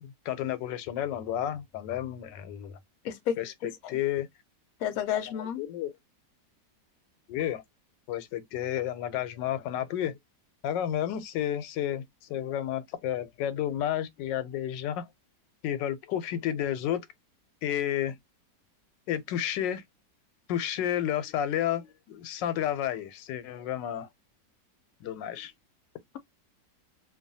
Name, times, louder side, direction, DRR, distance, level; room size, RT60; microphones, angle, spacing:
voice 1, 0.0-2.8 3.4-4.3 5.4-5.9 7.3-7.6 8.1-10.2 10.6-12.0 12.3-15.1 15.6-17.0 17.6-18.2 19.1-19.8 20.5-24.1 25.0-25.5, left 11 dB, 85° left, 1.3 m, -31 dB
voice 2, 3.0-3.4 3.8-4.0 4.8-5.6, left 9 dB, 70° left, 0.9 m, -30 dB
2.9 x 2.2 x 2.6 m
omnidirectional pair, 1.9 m